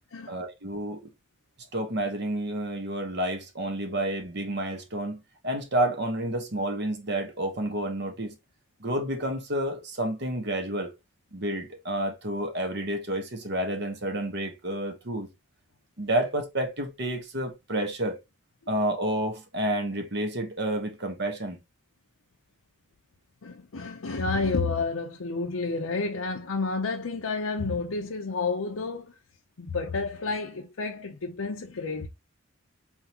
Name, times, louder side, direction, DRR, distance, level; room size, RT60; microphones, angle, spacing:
voice 1, 0.3-1.1 1.7-8.3 8.8-10.9 11.3-15.3 16.0-18.2 18.7-21.6, right 1 dB, 55° right, 1.1 m, -30 dB
voice 2, 23.4-29.1 29.6-32.1, left 3 dB, 85° left, 0.7 m, -30 dB
4.4 x 3.6 x 2.8 m
head